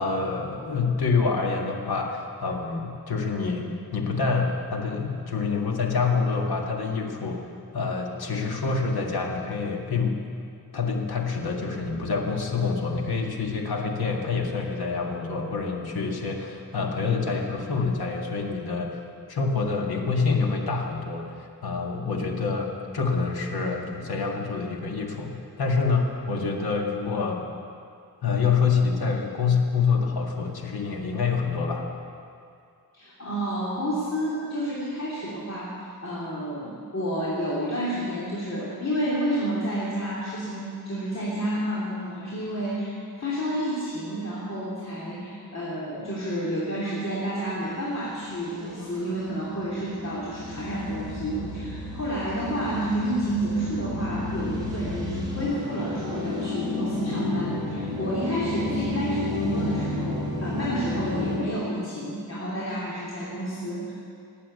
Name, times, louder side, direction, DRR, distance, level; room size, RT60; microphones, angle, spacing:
voice 1, 0.0-7.4 7.7-10.2 10.7-19.0 19.3-27.4 28.2-31.9, left 4 dB, 85° left, 1 dB, 2.0 m, -26 dB
voice 2, 32.9-35.7 36.0-63.9, right 1 dB, 45° left, -7 dB, 3.3 m, -30 dB
sound 1, 48.1-61.4, left 2 dB, 10° right, 4.6 m, -32 dB
19.5 x 8.5 x 8.2 m, 2.4 s
wide cardioid pair, 105°, 36 cm